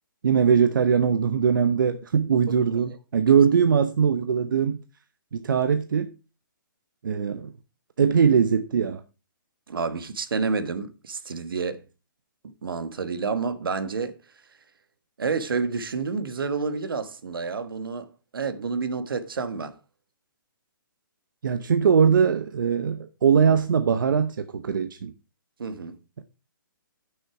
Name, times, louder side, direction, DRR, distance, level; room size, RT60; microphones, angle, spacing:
voice 1, 0.2-4.8 5.3-6.1 7.0-7.5 8.0-9.0 21.4-25.1, right 7 dB, 65° right, 0.8 m, -21 dB
voice 2, 9.7-11.8 12.4-14.2 15.2-19.7 25.6-26.0, right 4 dB, 85° right, 1.3 m, -29 dB
9.1 x 6.4 x 4.7 m
hypercardioid pair, 170°, 11 cm